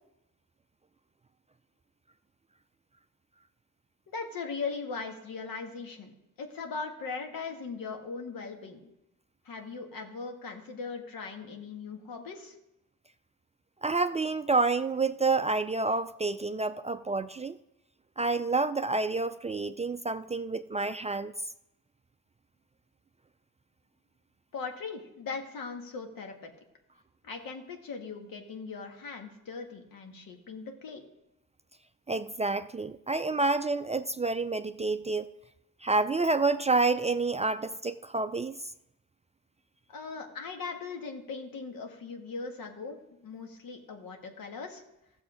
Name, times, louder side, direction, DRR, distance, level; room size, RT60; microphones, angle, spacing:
voice 1, 4.1-6.1 6.4-8.9 9.5-12.6 24.5-26.5 27.2-31.0 39.9-44.8, left 4 dB, 70° left, 1.8 m, -39 dB
voice 2, 13.8-17.6 18.2-21.3 32.1-35.3 35.8-38.6, right 3 dB, 20° right, 0.4 m, -28 dB
15.0 x 7.1 x 5.0 m
cardioid pair, 80°, 35 cm